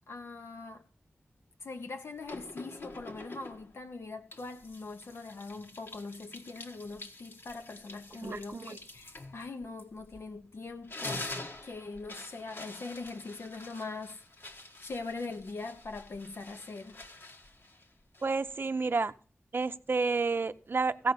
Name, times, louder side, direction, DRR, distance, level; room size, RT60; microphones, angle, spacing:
voice 1, 0.1-0.8 1.6-11.3 11.6-14.2 14.8-17.0, left 3 dB, 80° left, 1.1 m, -42 dB
sound 1, 2.3-3.8 4.3-10.4 10.7-18.5, left 2 dB, 60° left, 1.3 m, -46 dB
voice 2, 8.2-8.8 18.2-19.1 19.5-21.1, right 4 dB, 55° right, 0.6 m, -30 dB
15.5 x 5.4 x 6.9 m
wide cardioid pair, 85°, 4 cm